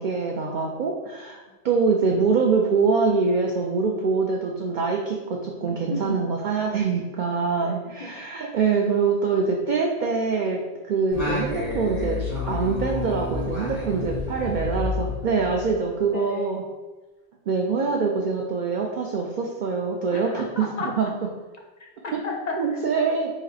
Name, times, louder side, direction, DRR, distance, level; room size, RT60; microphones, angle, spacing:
voice 1, 0.0-10.6 10.9-12.2 12.5-16.6 17.5-20.7 21.0-21.1 22.6-23.3, right 4 dB, 60° right, 0 dB, 0.5 m, -24 dB
voice 2, 5.7-6.3 7.6-8.2 13.9-14.3 16.1-16.5 20.1-21.1 21.8-22.8, left 3 dB, 50° left, 1 dB, 0.6 m, -35 dB
Singing, 11.1-15.9, left 3 dB, 25° right, 1.5 m, -30 dB
5.0 x 2.1 x 4.0 m, 1.2 s
omnidirectional pair, 1.2 m